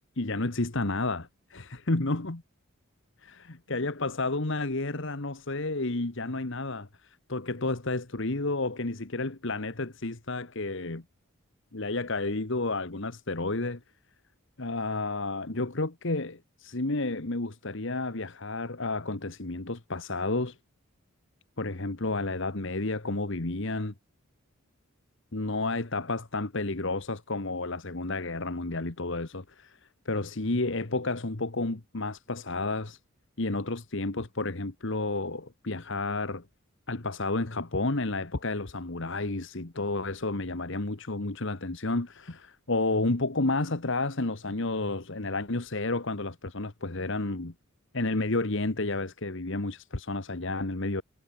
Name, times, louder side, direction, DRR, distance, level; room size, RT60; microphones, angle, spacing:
voice 1, 0.2-2.4 3.7-11.0 11.7-13.8 14.6-20.6 21.6-23.9 25.3-29.8 30.0-33.0 33.4-36.4 36.9-47.5 47.9-51.0, left 2 dB, 60° left, 1.5 m, -31 dB
head